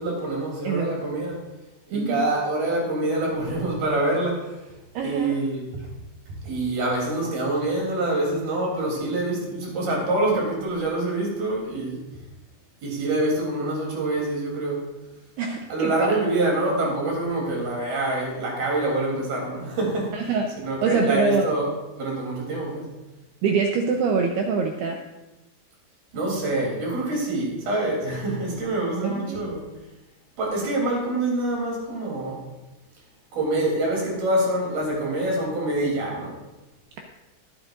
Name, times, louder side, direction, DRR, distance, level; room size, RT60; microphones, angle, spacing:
voice 1, 0.0-1.4 1.9-4.6 5.0-5.9 6.3-12.0 12.8-14.8 15.7-21.7 22.0-22.9 26.1-29.6 30.4-32.4 33.3-36.3, right 2 dB, 50° right, -3 dB, 5.0 m, -26 dB
voice 2, 1.9-2.2 5.0-5.4 15.4-16.2 20.1-20.5 20.8-21.5 23.4-25.0 29.0-29.4, right 5 dB, 85° right, 2 dB, 2.4 m, -24 dB
20.5 x 9.6 x 2.6 m, 1.0 s
omnidirectional pair, 5.6 m